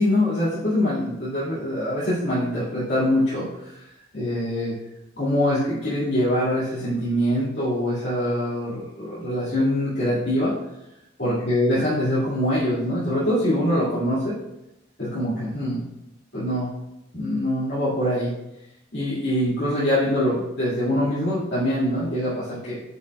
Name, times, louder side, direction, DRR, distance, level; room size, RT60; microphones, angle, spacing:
voice 1, 0.0-3.8 4.1-4.8 5.2-10.5 11.2-14.3 15.0-15.8 16.3-16.7 17.1-18.3 18.9-22.8, left 1 dB, 60° left, -12 dB, 2.2 m, -24 dB
8.9 x 5.6 x 2.4 m, 0.88 s
head